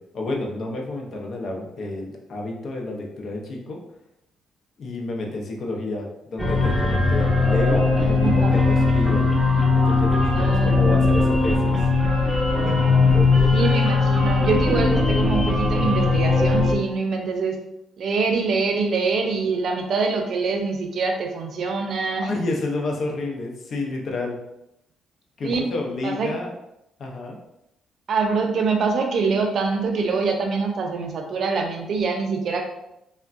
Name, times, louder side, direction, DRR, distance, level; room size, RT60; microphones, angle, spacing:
voice 1, 0.0-3.8 4.8-9.3 9.7-11.9 12.6-13.7 22.2-24.4 25.4-26.5 27.0-27.4, left 2 dB, 55° left, 0 dB, 0.6 m, -30 dB
sound 1, 6.4-16.8, left 3 dB, ahead, 0.8 m, -19 dB
voice 2, 10.3-11.0 13.5-17.6 18.0-22.3 25.4-25.6 26.0-26.3 28.1-32.6, right 4 dB, 60° right, 3 dB, 0.5 m, -24 dB
3.4 x 2.2 x 2.5 m, 0.84 s
cardioid pair, 90°, 0 cm